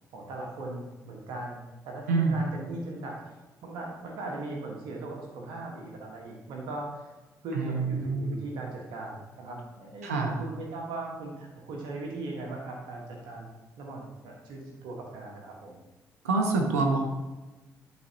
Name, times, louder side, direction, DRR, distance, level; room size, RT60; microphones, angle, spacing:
voice 1, 0.1-1.6 1.8-3.3 3.6-7.1 7.4-13.5 13.8-15.8, right 2 dB, 70° right, -1 dB, 1.5 m, -38 dB
voice 2, 2.1-2.4 7.5-8.3 10.0-10.4 16.2-17.1, right 3 dB, 90° right, 2 dB, 0.9 m, -26 dB
12.5 x 4.2 x 2.9 m, 1.1 s
hypercardioid pair, 40°, 8 cm